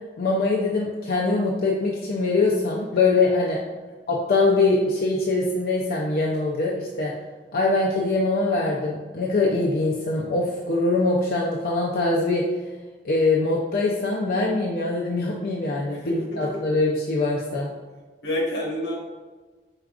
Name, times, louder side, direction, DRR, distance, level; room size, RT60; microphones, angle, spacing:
voice 1, 0.2-3.6 4.1-7.1 7.5-12.4 13.0-17.7, left 3 dB, 55° left, -2 dB, 0.5 m, -23 dB
voice 2, 15.9-16.6 18.2-19.0, left 1 dB, 80° left, -2 dB, 1.2 m, -29 dB
4.8 x 4.4 x 2.4 m, 1.3 s
head